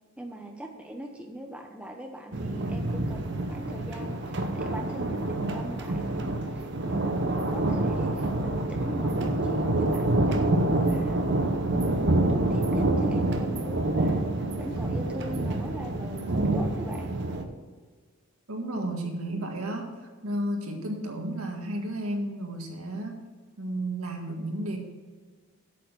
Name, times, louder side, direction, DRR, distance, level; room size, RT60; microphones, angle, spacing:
voice 1, 0.2-11.2 11.9-14.2 14.6-17.1, right 1 dB, 5° right, 2 dB, 0.9 m, -40 dB
sound 1, 2.3-17.4, right 2 dB, 55° right, 0.9 m, -27 dB
voice 2, 18.5-19.9 20.2-23.2 23.6-24.8, right 1 dB, 85° right, 2 dB, 1.8 m, -32 dB
8.4 x 7.1 x 5.9 m, 1.5 s
head